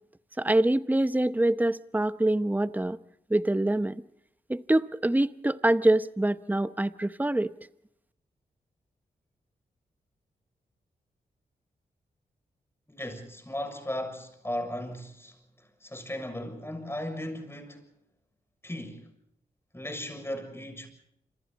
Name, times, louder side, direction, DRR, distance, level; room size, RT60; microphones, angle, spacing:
voice 1, 0.4-3.0 3.3-4.0 4.5-7.5, right 1 dB, 10° right, 0.9 m, -25 dB
voice 2, 12.9-15.3 15.8-17.9 18.6-19.1 19.7-20.9, left 1 dB, 15° left, 6.8 m, -36 dB
27.0 x 26.5 x 4.2 m
cardioid pair, 50°, 17 cm